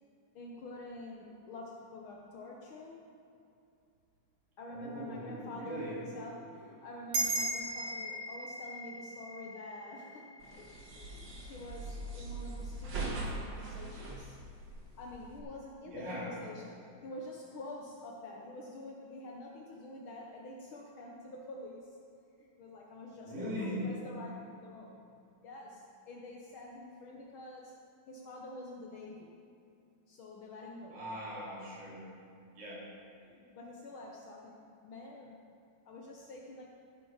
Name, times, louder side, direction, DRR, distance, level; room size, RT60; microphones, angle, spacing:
voice 1, 0.3-3.0 4.6-14.4 15.0-21.9 22.4-24.9 25.4-27.7 28.1-29.3 30.1-31.0 33.2-35.4 35.8-36.7, left 2 dB, 70° left, -2 dB, 1.2 m, -47 dB
voice 2, 4.7-6.0 15.8-16.4 23.3-23.9 30.9-32.0 32.5-32.9, equal, 90° right, -7 dB, 5.2 m, -40 dB
sound 1, 7.1-11.8, right 2 dB, 65° right, 3.0 m, -38 dB
sound 2, 10.4-15.4, right 2 dB, 45° right, 1.8 m, -41 dB
16.0 x 8.7 x 5.7 m, 2.5 s
omnidirectional pair, 3.8 m